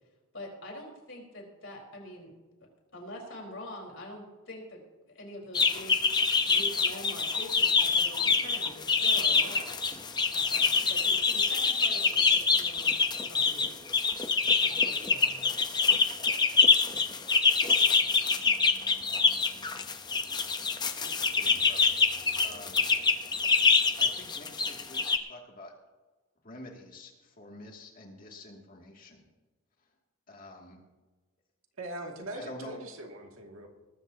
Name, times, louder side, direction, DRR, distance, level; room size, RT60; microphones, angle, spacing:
voice 1, 0.3-2.3 2.9-4.8 5.0-6.0 6.5-9.7 10.3-13.0 13.3-13.7 14.6-15.6, left 1 dB, 60° left, 0 dB, 4.3 m, -45 dB
sound 1, 5.5-25.2, left 4 dB, 20° left, 0.7 m, -25 dB
voice 2, 21.0-21.9 22.4-22.9 24.0-25.7 26.4-29.3 30.3-30.8 32.3-32.8, left 1 dB, 40° left, 0 dB, 2.4 m, -47 dB
voice 3, 31.8-33.7, right 1 dB, 75° right, 1 dB, 2.3 m, -41 dB
19.5 x 14.0 x 2.8 m, 1.2 s
head